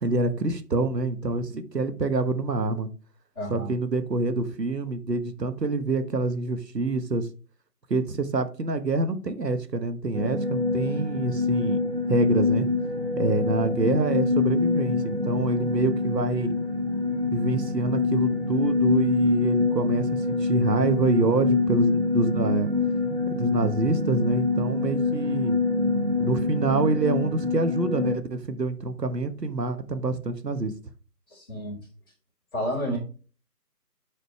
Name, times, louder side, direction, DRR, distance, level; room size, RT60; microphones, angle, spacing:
voice 1, 0.0-2.9 3.5-7.3 7.9-11.8 12.1-12.7 13.2-16.5 17.3-22.7 23.3-25.6 26.2-30.7, right 3 dB, 75° right, 1.3 m, -26 dB
voice 2, 3.3-3.7 31.3-31.8 32.5-33.0, equal, 15° left, 2.4 m, -30 dB
sound 1, 10.1-28.2, left 3 dB, 40° right, 0.7 m, -25 dB
7.8 x 5.1 x 3.2 m
figure-of-eight pair, 170°, 49 cm